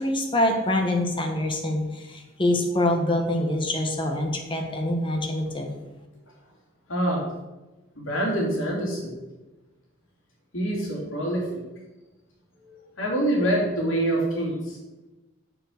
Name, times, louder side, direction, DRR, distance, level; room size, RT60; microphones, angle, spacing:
voice 1, 0.0-5.8, left 1 dB, 25° left, 3 dB, 1.4 m, -25 dB
voice 2, 6.9-7.3 7.9-9.1 10.5-11.6 12.6-14.8, right 1 dB, 70° left, -3 dB, 3.2 m, -26 dB
7.6 x 6.9 x 6.6 m, 1.1 s
head